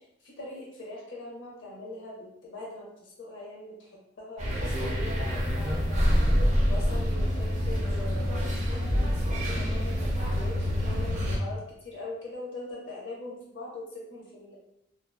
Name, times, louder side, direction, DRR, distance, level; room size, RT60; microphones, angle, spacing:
voice 1, 0.2-3.9 4.2-6.2 6.7-8.6 8.9-14.6, left 1 dB, 70° left, -3 dB, 0.6 m, -42 dB
sound 1, 4.4-11.4, equal, 40° right, 0.5 m, -26 dB
2.6 x 2.1 x 2.2 m, 0.79 s
head